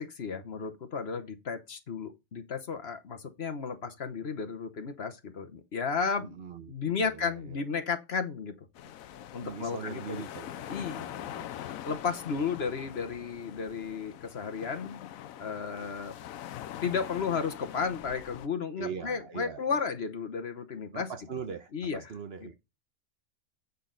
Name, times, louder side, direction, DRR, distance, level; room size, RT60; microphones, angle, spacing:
voice 1, 0.0-6.3 6.7-8.5 9.3-10.2 10.7-11.0 11.5-16.1 16.8-21.1 21.7-22.1 22.4-22.5, left 5 dB, 50° left, 1.2 m, -33 dB
voice 2, 6.2-6.7 7.0-7.6 8.8-11.5 15.8-16.0 18.8-19.6 20.9-22.5, right 6 dB, 50° right, 1.1 m, -42 dB
sound 1, 8.8-18.5, left 11 dB, 80° left, 1.1 m, -43 dB
8.3 x 6.3 x 3.9 m
omnidirectional pair, 1.4 m